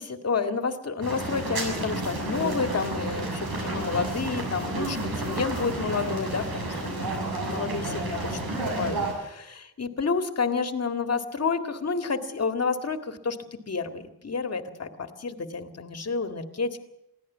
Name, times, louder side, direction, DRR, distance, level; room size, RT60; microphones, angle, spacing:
voice 1, 0.0-7.1 7.5-16.8, left 4 dB, 40° left, 7 dB, 2.0 m, -30 dB
sound 1, 1.0-9.1, right 2 dB, 70° right, 6.9 m, -31 dB
22.5 x 16.0 x 7.4 m, 0.82 s
wide cardioid pair, 105°, 38 cm